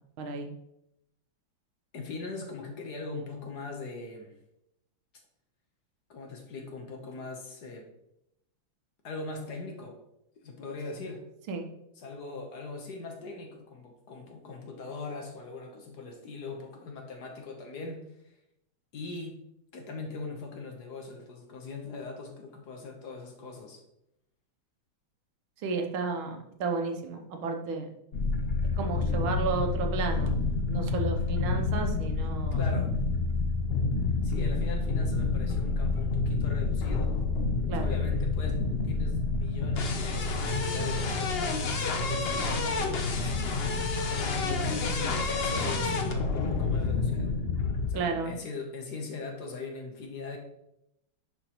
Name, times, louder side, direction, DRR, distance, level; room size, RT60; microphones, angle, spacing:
voice 1, 0.2-0.5 11.5-11.7 25.6-27.9 28.8-30.3 30.7-32.6 37.7-37.9 47.9-48.4, right 4 dB, 90° right, 4 dB, 1.7 m, -32 dB
voice 2, 1.9-4.3 6.1-7.9 9.0-10.0 10.4-11.3 12.0-18.1 18.9-19.4 19.7-23.8 32.5-33.0 34.2-37.2 37.8-43.3 44.1-47.3 47.9-50.4, left 3 dB, 55° left, 2 dB, 1.5 m, -40 dB
sound 1, 28.1-47.9, left 3 dB, 75° left, 0.5 m, -28 dB
10.5 x 4.9 x 3.0 m, 0.82 s
omnidirectional pair, 2.2 m